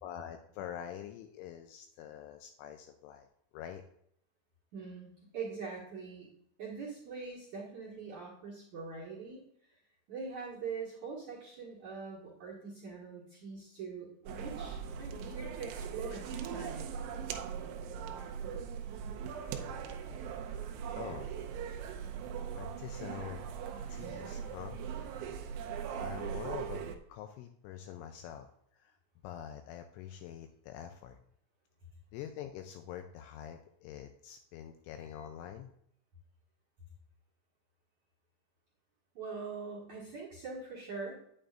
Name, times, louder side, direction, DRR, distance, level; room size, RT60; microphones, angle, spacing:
voice 1, 0.0-3.3 3.5-3.8 20.5-20.7 21.0-21.3 22.6-23.4 23.9-24.8 25.0-25.3 26.0-26.8 27.1-28.5 28.8-28.9 29.2-31.2 32.1-35.7, left 10 dB, 85° left, 6 dB, 2.8 m, -45 dB
voice 2, 4.7-6.3 6.6-9.4 10.1-16.8 39.1-41.1, right 4 dB, 60° right, -4 dB, 1.9 m, -43 dB
sound 1, 14.3-27.0, right 7 dB, 85° right, 2.9 m, -40 dB
9.4 x 8.7 x 2.5 m, 0.72 s
omnidirectional pair, 5.9 m